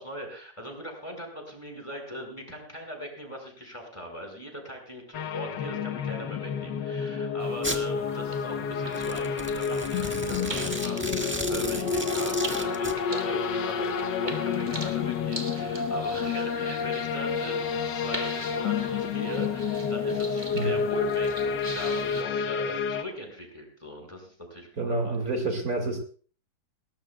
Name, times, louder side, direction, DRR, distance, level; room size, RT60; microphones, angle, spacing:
voice 1, 0.0-25.2, equal, 15° left, 2 dB, 5.2 m, -40 dB
sound 1, 5.1-23.0, left 6 dB, 90° left, 1.6 m, -29 dB
sound 2, 7.4-22.2, right 1 dB, 25° right, 2.2 m, -43 dB
Domestic sounds home sounds, 7.6-7.8 8.9-13.0, right 1 dB, 5° right, 1.3 m, -35 dB
voice 2, 24.8-26.0, right 2 dB, 55° right, 4 dB, 2.5 m, -28 dB
21.0 x 18.5 x 2.3 m, 0.41 s
omnidirectional pair, 1.9 m